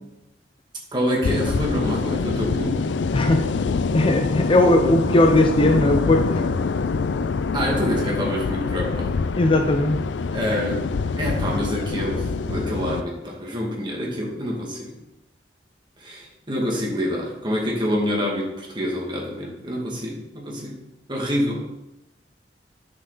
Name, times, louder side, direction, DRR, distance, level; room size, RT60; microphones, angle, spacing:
voice 1, 0.9-2.8 7.5-9.2 10.3-10.8 11.2-14.9 16.0-20.8 21.1-21.7, equal, 25° right, -2 dB, 2.2 m, -26 dB
sound 1, 1.2-13.0, left 4 dB, 85° left, 0.4 m, -25 dB
voice 2, 3.1-3.4 3.9-6.5 9.4-10.0, left 1 dB, 30° left, 4 dB, 0.6 m, -18 dB
10.0 x 6.5 x 4.1 m, 0.92 s
head